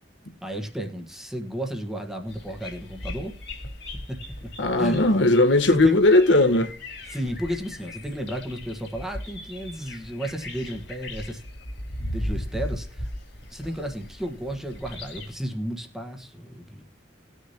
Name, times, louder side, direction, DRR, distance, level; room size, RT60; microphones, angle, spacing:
voice 1, 0.4-3.3 4.1-4.2 4.8-5.0 5.7-6.0 7.1-11.4 12.0-13.1 13.5-16.8, equal, 5° right, 1.4 m, -33 dB
sound 1, 2.3-15.4, left 1 dB, 70° left, 3.4 m, -38 dB
voice 2, 4.6-6.7, left 2 dB, 85° left, 1.2 m, -18 dB
19.0 x 6.5 x 2.8 m
head